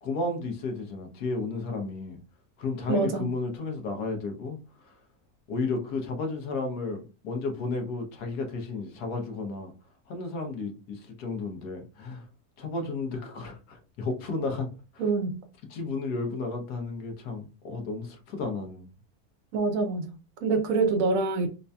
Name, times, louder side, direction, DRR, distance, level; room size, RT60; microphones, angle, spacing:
voice 1, 0.0-2.2 2.6-4.6 5.5-9.7 10.1-12.2 12.6-14.7 15.7-18.9, left 3 dB, 85° left, 1.4 m, -33 dB
voice 2, 2.9-3.3 15.0-15.4 19.5-21.5, right 4 dB, 70° right, 0.9 m, -26 dB
4.4 x 2.7 x 2.2 m
omnidirectional pair, 1.6 m